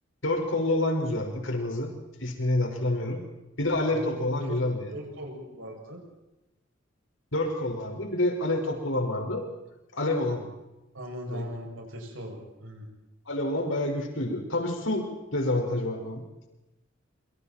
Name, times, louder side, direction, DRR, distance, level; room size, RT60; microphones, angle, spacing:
voice 1, 0.2-1.9 2.2-3.2 3.6-4.9 7.3-9.5 9.9-10.5 11.3-11.4 13.3-15.1 15.3-16.2, left 1 dB, 80° left, 3 dB, 5.4 m, -28 dB
voice 2, 3.9-4.6 4.9-6.0 10.9-12.9, equal, 90° right, 1 dB, 7.6 m, -39 dB
27.0 x 25.5 x 4.5 m, 0.98 s
head